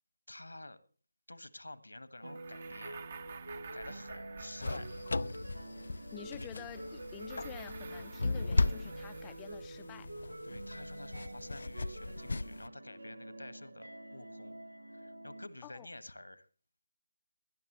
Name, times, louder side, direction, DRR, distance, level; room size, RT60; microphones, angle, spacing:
voice 1, 0.3-0.8 1.3-3.0 3.7-5.0 6.4-6.5 10.4-14.6 14.9-16.5, left 2 dB, 80° left, 1.5 m, -50 dB
sound 1, 2.2-15.5, right 1 dB, 80° right, 1.3 m, -47 dB
sound 2, 2.3-5.5 6.6-9.7, right 5 dB, 40° right, 1.2 m, -50 dB
sound 3, 4.6-12.7, left 3 dB, 65° left, 0.5 m, -36 dB
voice 2, 6.1-10.1 15.6-15.9, left 13 dB, 15° left, 0.6 m, -49 dB
17.5 x 12.5 x 3.0 m
figure-of-eight pair, 155°, 0 cm